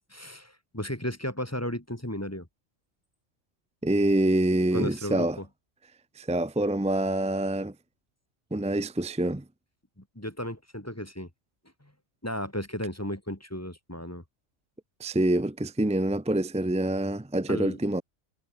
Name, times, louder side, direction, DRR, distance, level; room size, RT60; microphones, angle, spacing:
voice 1, 0.1-2.5 4.7-5.5 10.0-11.3 11.8-11.9 12.2-14.2 17.5-17.8, left 1 dB, 10° left, 2.5 m, -34 dB
voice 2, 3.8-5.4 6.2-7.7 8.5-9.4 15.0-18.0, right 1 dB, 10° right, 0.4 m, -26 dB
omnidirectional pair, 1.3 m